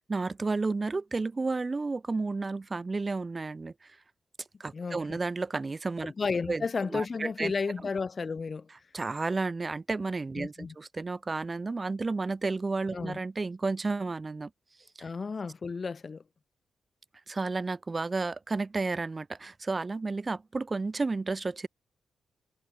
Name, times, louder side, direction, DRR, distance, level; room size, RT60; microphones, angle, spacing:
voice 1, 0.1-4.0 4.6-6.1 6.5-6.6 6.9-7.5 8.9-14.5 15.0-15.1 17.3-21.7, right 3 dB, 35° right, 0.7 m, -32 dB
voice 2, 4.7-5.2 6.0-8.7 10.4-10.7 12.9-13.2 15.0-16.2, left 4 dB, 45° left, 0.7 m, -33 dB
hypercardioid pair, 45°, 0 cm